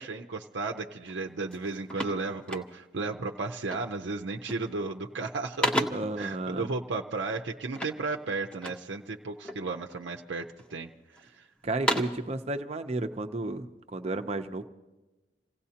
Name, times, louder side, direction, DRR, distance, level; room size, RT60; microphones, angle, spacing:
voice 1, 0.0-5.9 6.2-10.9 11.2-11.3, right 3 dB, 75° right, 2 dB, 0.6 m, -34 dB
sound 1, 1.0-1.2 1.5-3.1 3.7-4.0 4.3-4.8 5.2-6.2 7.7-8.9 9.4-10.1 10.6-11.2 11.6-12.3, equal, 5° left, 0.8 m, -33 dB
voice 2, 5.9-6.7 11.6-14.6, right 2 dB, 35° right, 7 dB, 0.7 m, -32 dB
28.5 x 17.0 x 2.9 m, 1.1 s
head